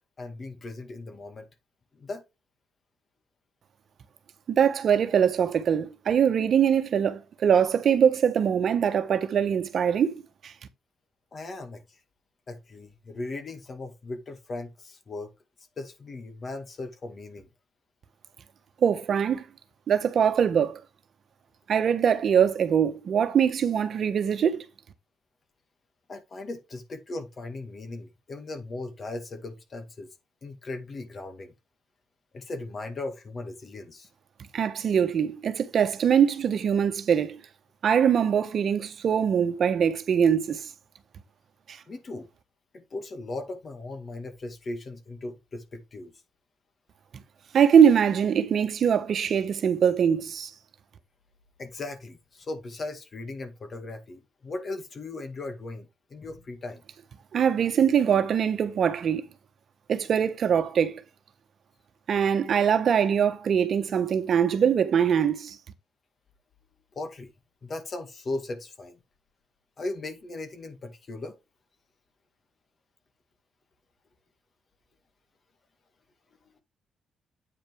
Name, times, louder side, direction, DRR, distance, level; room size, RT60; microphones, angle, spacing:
voice 1, 0.0-1.5 1.9-2.2 11.3-11.8 12.5-15.3 15.8-17.5 26.1-30.1 30.4-31.5 32.3-34.1 41.9-42.3 42.7-46.1 51.6-56.8 66.9-67.3 67.6-69.0 69.8-71.4, left 2 dB, 40° left, 1.8 m, -38 dB
voice 2, 4.5-10.5 18.8-19.4 19.9-20.8 21.7-24.6 34.5-37.4 37.8-40.6 41.7-41.8 47.5-50.5 57.3-59.2 59.9-61.0 62.1-65.6, right 8 dB, 55° right, 1.1 m, -22 dB
8.8 x 5.1 x 3.6 m
cardioid pair, 90°, 0 cm